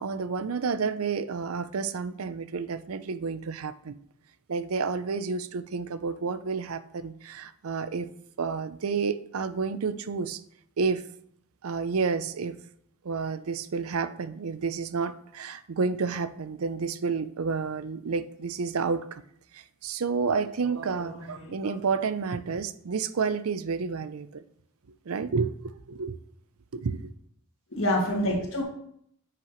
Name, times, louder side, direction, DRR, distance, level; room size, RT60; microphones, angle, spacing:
voice 1, 0.0-4.0 4.5-8.1 8.4-10.4 10.8-11.0 11.6-12.6 13.0-19.2 19.5-24.4 25.1-25.5 25.9-26.2 26.7-27.1, right 5 dB, 85° right, 14 dB, 0.5 m, -30 dB
voice 2, 21.1-21.7 27.7-28.6, left 1 dB, 65° left, 0 dB, 2.1 m, -28 dB
9.8 x 5.9 x 3.1 m, 0.68 s
head